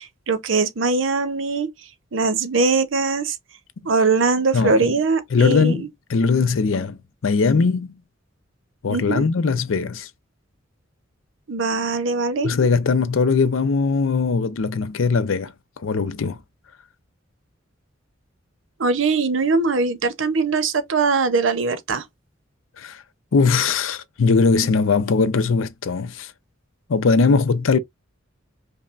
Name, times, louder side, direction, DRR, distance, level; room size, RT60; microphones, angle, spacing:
voice 1, 0.0-1.7 2.1-3.4 3.8-5.9 8.9-9.2 11.5-12.5 18.8-22.0, right 4 dB, 75° right, 0.7 m, -21 dB
voice 2, 4.5-4.9 5.3-8.0 8.8-10.1 12.4-16.4 22.8-23.0 23.3-26.3 26.9-27.8, left 4 dB, 85° left, 0.5 m, -20 dB
5.4 x 2.1 x 2.4 m
head